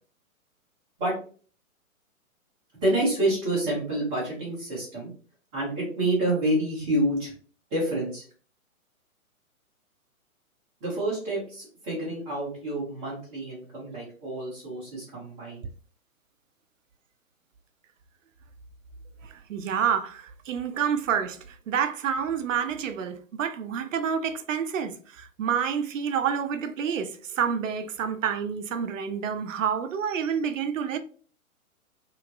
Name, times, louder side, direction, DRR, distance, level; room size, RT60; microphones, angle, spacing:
voice 1, 2.7-5.1 5.5-7.3 7.7-8.2 10.8-15.6, right 1 dB, 5° right, 0.4 m, -28 dB
voice 2, 19.5-21.4 21.7-27.1 27.4-31.0, right 7 dB, 60° right, 0.5 m, -28 dB
3.0 x 2.8 x 2.3 m
figure-of-eight pair, 125°, 43 cm